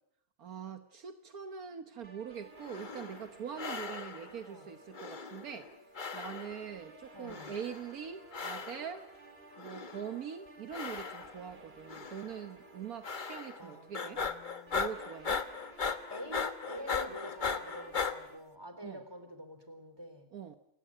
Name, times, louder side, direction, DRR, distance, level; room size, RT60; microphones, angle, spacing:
voice 1, 0.4-5.7 6.1-9.1 9.6-14.2 14.7-15.4 18.8-19.0 20.3-20.6, right 7 dB, 70° right, 8 dB, 1.6 m, -43 dB
sound 1, 2.0-18.4, right 2 dB, 40° right, 2.6 m, -56 dB
sound 2, 2.6-3.3 3.6-4.4 4.9-5.7 5.9-6.7 7.3-7.9 8.3-9.0 9.6-10.2 10.7-11.5 11.9-12.4 13.0-13.7 13.9-18.1, left 5 dB, 35° left, 1.2 m, -38 dB
voice 2, 7.1-7.5 13.6-14.9 16.1-20.3, equal, 15° right, 8 dB, 3.6 m, -47 dB
28.5 x 15.5 x 8.8 m, 0.80 s
omnidirectional pair, 1.6 m